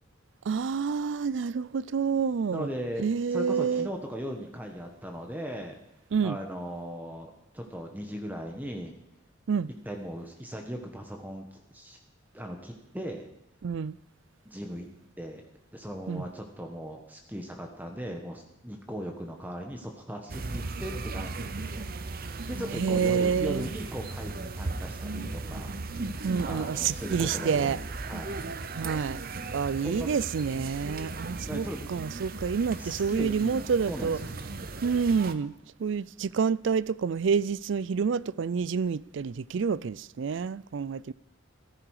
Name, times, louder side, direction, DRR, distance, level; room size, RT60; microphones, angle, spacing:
voice 1, 0.5-2.7 3.0-3.9 6.1-6.4 9.5-9.7 13.6-14.0 16.1-16.2 22.8-23.7 26.2-27.8 28.7-29.2 29.5-34.2 34.8-35.5 35.8-41.1, right 6 dB, 65° right, 0.4 m, -28 dB
voice 2, 2.5-5.7 6.2-9.0 9.8-12.0 12.3-13.3 14.4-14.9 15.2-15.4 15.7-21.7 22.5-27.8 28.1-28.3 29.8-30.2 31.5-31.9 32.7-34.3, equal, 10° right, 1.2 m, -38 dB
sound 1, 20.3-35.3, right 3 dB, 50° right, 0.8 m, -37 dB
15.0 x 14.0 x 4.8 m
head